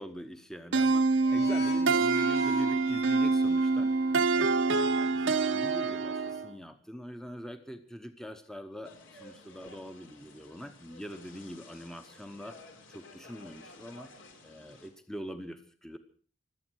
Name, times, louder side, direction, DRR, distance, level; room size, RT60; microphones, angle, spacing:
voice 1, 0.0-3.9 4.3-12.6 12.9-14.1 14.4-16.0, equal, 5° left, 8 dB, 0.9 m, -43 dB
sound 1, 0.7-6.5, right 3 dB, 65° right, 1.0 m, -26 dB
sound 2, 1.2-4.5, equal, 55° left, 6.0 m, -40 dB
sound 3, 8.8-14.9, left 2 dB, 75° left, 3.8 m, -53 dB
25.0 x 8.6 x 6.2 m, 0.43 s
head